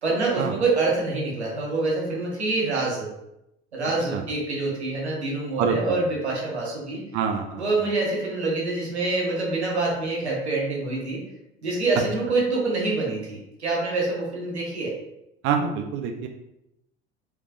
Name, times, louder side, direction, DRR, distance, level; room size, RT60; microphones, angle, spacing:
voice 1, 0.0-3.1 3.7-7.0 7.6-11.2 11.6-15.0, right 3 dB, 85° right, -3 dB, 1.0 m, -26 dB
voice 2, 7.1-7.7 15.4-16.3, right 6 dB, 40° right, 4 dB, 0.4 m, -26 dB
3.4 x 3.1 x 2.4 m, 0.84 s
figure-of-eight pair, 70°, 32 cm